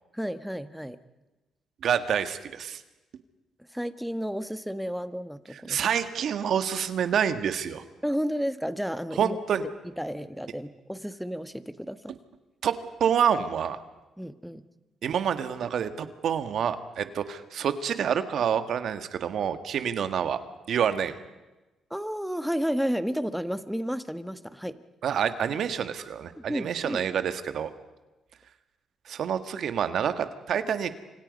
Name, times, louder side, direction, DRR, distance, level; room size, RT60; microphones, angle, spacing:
voice 1, 0.1-1.0 3.7-5.8 8.0-9.4 10.0-12.1 14.2-14.6 21.9-24.8 26.3-27.0, equal, ahead, 11 dB, 1.5 m, -32 dB
voice 2, 1.8-2.8 5.5-7.8 9.2-9.6 12.6-13.8 15.0-20.4 20.7-21.2 25.0-27.7 29.1-31.0, right 8 dB, 65° right, 10 dB, 1.8 m, -27 dB
29.0 x 26.0 x 5.4 m, 1.1 s
cardioid pair, 90°, 0 cm